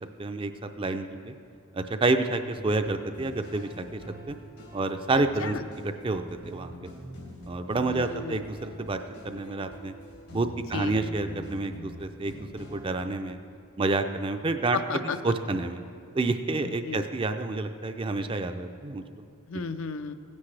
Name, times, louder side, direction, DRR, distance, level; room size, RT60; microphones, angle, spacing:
voice 1, 0.2-1.3 1.7-4.0 4.3-4.4 4.7-5.6 6.0-6.9 7.5-9.0 9.2-9.9 10.3-13.4 13.8-14.8 15.2-15.8 16.1-19.0, right 3 dB, 25° right, 8 dB, 0.4 m, -29 dB
sound 1, 2.5-13.0, equal, 85° left, 3.1 m, -45 dB
voice 2, 7.9-8.4 10.7-11.0 14.7-15.2 16.6-17.0 19.5-20.1, left 5 dB, 65° left, 10 dB, 0.5 m, -33 dB
16.0 x 9.6 x 3.3 m, 2.4 s
head